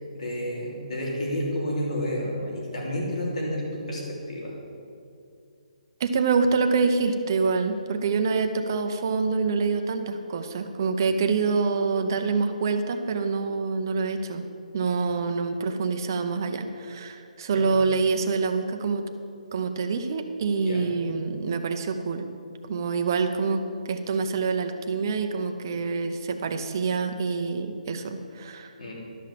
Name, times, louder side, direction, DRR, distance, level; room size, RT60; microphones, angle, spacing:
voice 1, 0.0-4.5 17.5-17.7 20.6-20.9 28.8-28.9, equal, 55° left, -3 dB, 3.3 m, -30 dB
voice 2, 6.0-14.4 14.7-19.0 19.5-22.3 22.7-28.7, right 4 dB, 25° right, 6 dB, 0.6 m, -26 dB
12.0 x 5.9 x 7.5 m, 2.4 s
hypercardioid pair, 175°, 4 cm